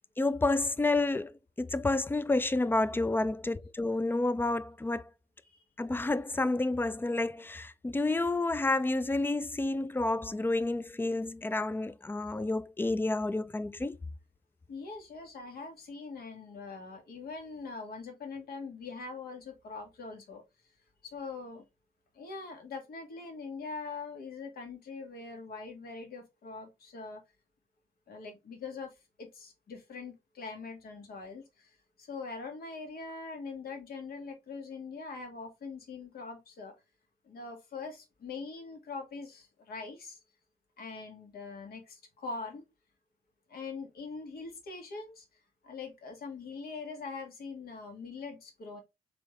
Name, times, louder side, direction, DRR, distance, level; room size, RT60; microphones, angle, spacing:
voice 1, 0.2-5.0 5.8-14.0, left 2 dB, 10° left, 0.4 m, -30 dB
voice 2, 14.7-20.4 21.0-21.6 22.1-27.2 28.1-36.7 37.2-40.2 40.8-42.6 43.5-45.2 45.6-48.8, left 4 dB, 60° left, 1.5 m, -42 dB
3.5 x 3.4 x 3.2 m
hypercardioid pair, 45°, 18 cm